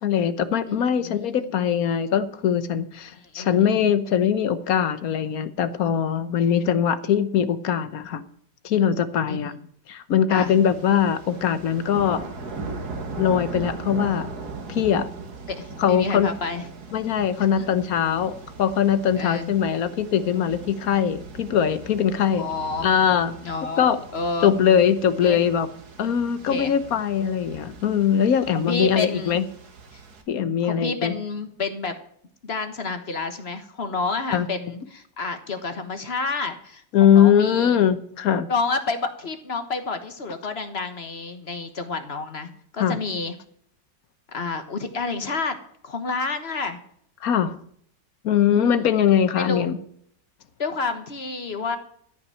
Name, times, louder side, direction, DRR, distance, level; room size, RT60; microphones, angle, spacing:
voice 1, 0.0-8.2 8.6-9.5 9.9-12.2 13.2-14.3 14.7-15.1 15.8-16.3 16.9-18.3 18.6-22.4 22.8-23.3 23.8-24.0 24.4-25.7 26.0-29.4 30.3-31.2 34.3-34.5 36.9-38.5 42.8-43.0 47.2-47.6 48.2-49.8, left 8 dB, 60° left, 13 dB, 1.2 m, -21 dB
voice 2, 0.7-1.4 3.1-3.9 9.3-9.6 10.3-10.5 15.5-16.7 19.2-19.5 22.3-22.9 23.4-24.5 25.2-25.4 26.5-26.7 28.5-29.4 29.9-30.0 30.6-31.9 32.4-37.8 38.5-43.3 44.3-45.6 45.8-46.8 48.5-48.8 49.3-49.7 50.6-51.8, left 3 dB, 40° left, 8 dB, 1.4 m, -29 dB
sound 1, 10.3-30.2, right 3 dB, 60° right, 2.1 m, -39 dB
14.0 x 5.9 x 8.9 m, 0.65 s
omnidirectional pair, 1.9 m